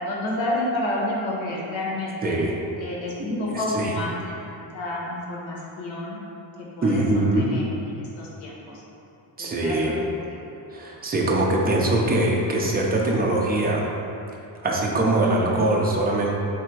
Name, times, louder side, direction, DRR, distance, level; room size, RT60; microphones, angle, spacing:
voice 1, 0.0-2.4 2.8-6.2 6.6-7.0 7.3-8.8 9.4-10.0 10.3-10.4 15.2-15.7, left 1 dB, 80° left, -4 dB, 1.1 m, -30 dB
voice 2, 2.2-2.6 3.3-3.9 6.8-7.5 9.4-10.0 10.7-13.9 14.6-16.3, right 2 dB, 20° right, -2 dB, 0.5 m, -22 dB
3.4 x 3.4 x 4.5 m, 2.9 s
wide cardioid pair, 165°, 46 cm